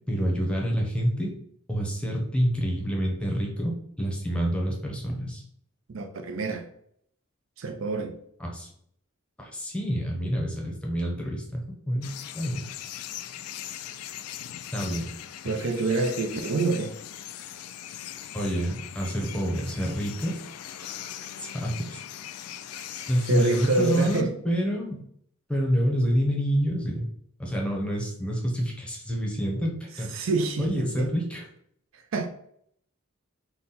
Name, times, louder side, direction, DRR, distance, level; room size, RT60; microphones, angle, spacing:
voice 1, 0.1-1.3 1.7-5.4 8.4-8.7 9.4-12.0 12.3-12.7 14.7-15.0 18.3-20.4 20.8-21.1 21.4-22.0 23.1-25.0 25.5-27.1 27.4-30.1 30.6-31.5, equal, 5° left, 0.7 m, -27 dB
voice 2, 5.9-6.7 7.6-8.1 15.4-17.0 22.7-24.3 30.1-31.1 31.9-32.3, right 3 dB, 60° right, 0.5 m, -27 dB
sound 1, 12.0-24.2, left 11 dB, 90° left, 0.3 m, -40 dB
3.9 x 2.2 x 4.0 m
head